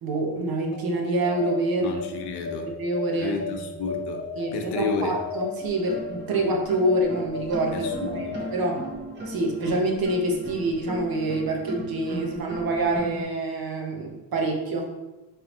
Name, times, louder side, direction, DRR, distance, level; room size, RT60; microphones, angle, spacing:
voice 1, 0.0-2.0 2.6-3.7 4.4-8.8 9.3-14.9, right 2 dB, 55° right, 1 dB, 0.9 m, -26 dB
sound 1, 0.6-9.6, left 3 dB, 35° left, 0.7 m, -36 dB
voice 2, 1.8-2.7 3.2-4.2 4.5-5.2 7.7-8.4, left 4 dB, 70° left, 4 dB, 0.7 m, -31 dB
sound 2, 5.6-13.2, right 2 dB, 25° right, 1.1 m, -37 dB
4.5 x 3.2 x 3.0 m, 1.0 s
wide cardioid pair, 145°, 42 cm